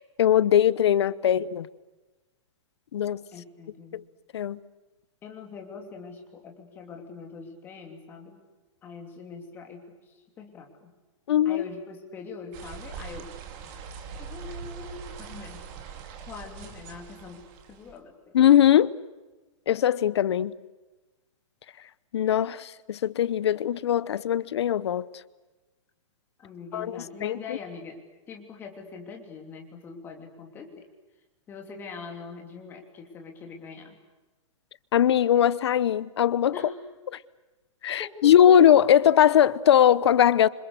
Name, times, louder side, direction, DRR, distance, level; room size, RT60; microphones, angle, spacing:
voice 1, 0.2-1.7 2.9-3.2 3.9-4.0 4.3-4.6 11.3-11.6 18.3-18.9 19.7-20.5 22.1-25.1 26.7-27.4 34.9-36.5 37.8-40.5, left 10 dB, 55° left, 0.9 m, -20 dB
voice 2, 3.3-4.0 5.2-8.4 8.8-10.9 11.4-13.3 14.2-15.7 16.3-18.4 26.4-28.0 28.3-30.9 31.5-34.0 36.5-36.8 38.0-38.6, left 5 dB, 10° left, 2.9 m, -43 dB
sound 1, 12.5-18.0, right 6 dB, 25° right, 2.4 m, -42 dB
28.0 x 26.5 x 6.7 m
hypercardioid pair, 175°, 17 cm